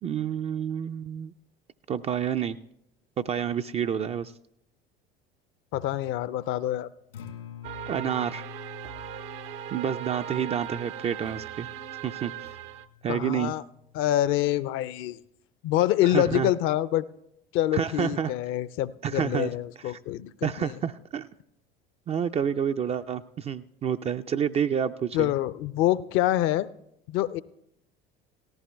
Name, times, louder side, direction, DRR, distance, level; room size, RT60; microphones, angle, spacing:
voice 1, 0.0-1.3 1.9-2.6 3.2-4.3 7.9-8.5 9.7-11.7 12.0-12.3 13.0-13.5 16.0-16.5 17.7-18.3 19.0-19.5 20.4-21.3 22.1-25.3, right 8 dB, 20° right, 10 dB, 0.3 m, -29 dB
voice 2, 5.7-6.9 13.1-13.6 13.9-15.2 15.6-17.1 17.5-20.7 25.1-26.7 27.1-27.4, left 13 dB, 45° left, 17 dB, 0.5 m, -26 dB
Acoustic guitar, 7.0-15.2, left 10 dB, 75° left, 1.7 m, -48 dB
sound 1, 7.6-12.9, right 12 dB, 65° right, 0.6 m, -38 dB
18.0 x 14.5 x 2.3 m, 0.79 s
figure-of-eight pair, 60°, 29 cm